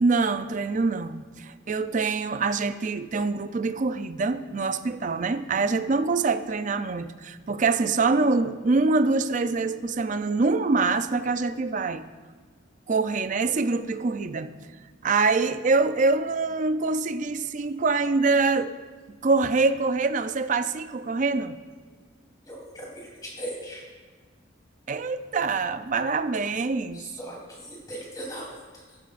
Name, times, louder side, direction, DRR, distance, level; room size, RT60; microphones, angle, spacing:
voice 1, 0.0-12.0 12.9-14.5 15.0-18.7 19.2-21.6 24.9-27.0, right 3 dB, 40° right, 11 dB, 0.4 m, -25 dB
voice 2, 22.4-23.9 26.9-29.0, right 1 dB, 20° left, -3 dB, 3.3 m, -39 dB
14.5 x 12.0 x 2.5 m, 1.5 s
head